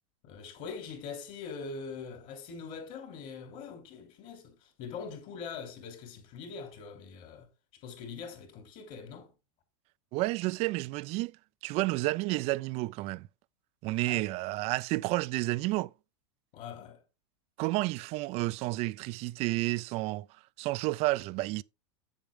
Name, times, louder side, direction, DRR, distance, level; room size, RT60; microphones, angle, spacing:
voice 1, 0.2-7.5 7.8-9.3 14.0-14.2 16.5-17.0, left 5 dB, 50° left, 3.0 m, -43 dB
voice 2, 10.1-11.4 11.6-13.3 13.8-15.9 17.6-20.3 20.6-21.6, right 20 dB, 40° right, 0.4 m, -30 dB
8.2 x 7.1 x 3.5 m
supercardioid pair, 135°, 16 cm